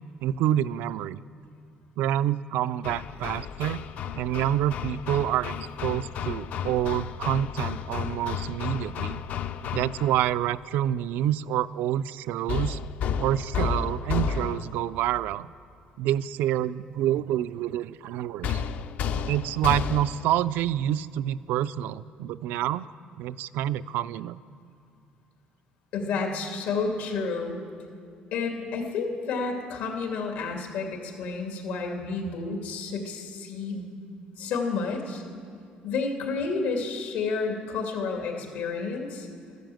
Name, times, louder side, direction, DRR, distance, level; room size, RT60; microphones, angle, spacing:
voice 1, 0.2-1.2 2.0-3.8 4.1-9.2 9.7-12.8 13.2-15.5 16.0-18.6 19.3-22.9 23.2-24.4, right 12 dB, 80° right, 16 dB, 0.4 m, -27 dB
Hammer, 2.8-10.3 12.5-14.9 18.4-20.4, left 7 dB, 55° left, 0.5 m, -32 dB
voice 2, 25.9-27.6 28.3-33.8 34.4-35.2 35.8-39.3, left 4 dB, 85° left, 2 dB, 2.4 m, -30 dB
13.5 x 12.0 x 7.7 m, 2.4 s
cardioid pair, 165°, 3 cm